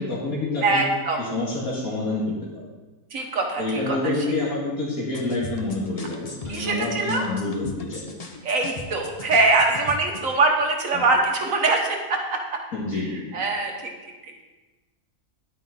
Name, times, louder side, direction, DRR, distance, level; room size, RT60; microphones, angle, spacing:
voice 1, 0.0-0.8 1.2-2.6 3.6-8.1 10.9-11.0 12.7-13.3, left 2 dB, 70° left, -6 dB, 2.5 m, -28 dB
voice 2, 0.6-1.2 3.1-4.3 6.5-7.2 8.4-12.4 13.3-13.9 14.2-14.3, right 3 dB, 60° right, 2 dB, 1.6 m, -23 dB
sound 1, 5.1-10.3, left 2 dB, 35° left, 0.7 m, -39 dB
10.5 x 8.9 x 3.9 m, 1.2 s
omnidirectional pair, 1.6 m